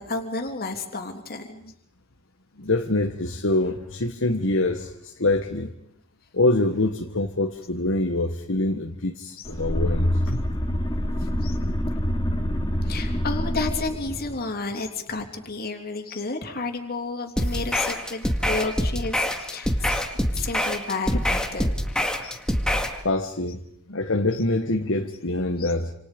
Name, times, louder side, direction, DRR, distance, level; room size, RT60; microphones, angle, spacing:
voice 1, 0.0-1.7 9.4-9.5 11.4-11.6 12.8-20.0 20.3-21.7 22.2-22.4 24.3-24.4 25.6-25.7, left 3 dB, 45° left, 5 dB, 3.3 m, -31 dB
voice 2, 2.6-5.7 6.3-10.4 23.0-23.6 23.9-25.9, left 2 dB, 60° left, 4 dB, 1.5 m, -25 dB
sound 1, 9.4-14.3, equal, 20° left, 2.4 m, -26 dB
sound 2, 17.4-23.0, equal, 5° left, 2.0 m, -25 dB
28.0 x 27.5 x 5.3 m, 0.75 s
head